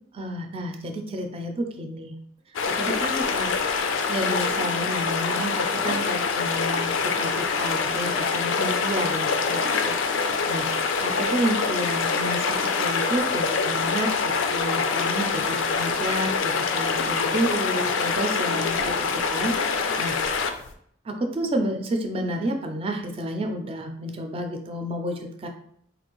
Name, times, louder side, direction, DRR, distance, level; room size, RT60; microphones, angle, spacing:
voice 1, 0.1-2.1 2.8-3.5 4.1-20.2 21.1-25.5, right 1 dB, 30° right, 4 dB, 0.4 m, -30 dB
sound 1, 2.6-20.7, left 5 dB, 90° left, 0.4 m, -25 dB
4.0 x 2.5 x 2.9 m, 0.66 s
head